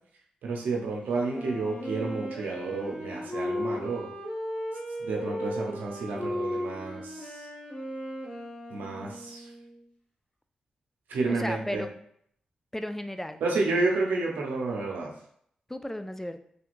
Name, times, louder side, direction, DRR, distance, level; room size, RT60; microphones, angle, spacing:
voice 1, 0.4-4.1 5.0-7.4 8.7-9.5 11.1-11.8 13.4-15.1, right 3 dB, 90° right, -1 dB, 0.7 m, -30 dB
Wind instrument woodwind instrument, 1.2-9.8, left 1 dB, 55° left, 1.3 m, -36 dB
voice 2, 11.3-11.9 12.7-13.4 15.7-16.4, left 1 dB, 10° left, 9 dB, 0.3 m, -34 dB
3.3 x 2.9 x 2.5 m, 0.66 s
supercardioid pair, 45°, 3 cm